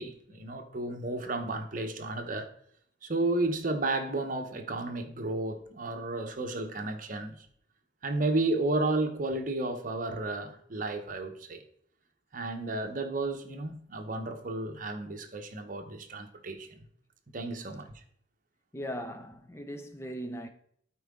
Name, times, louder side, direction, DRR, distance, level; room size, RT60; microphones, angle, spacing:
voice 1, 0.0-2.5 3.0-7.5 8.0-11.6 12.3-16.8 17.3-17.9, right 2 dB, 45° right, 0.9 m, -32 dB
voice 2, 18.7-20.5, equal, 15° left, 0.4 m, -39 dB
12.0 x 4.6 x 3.6 m
head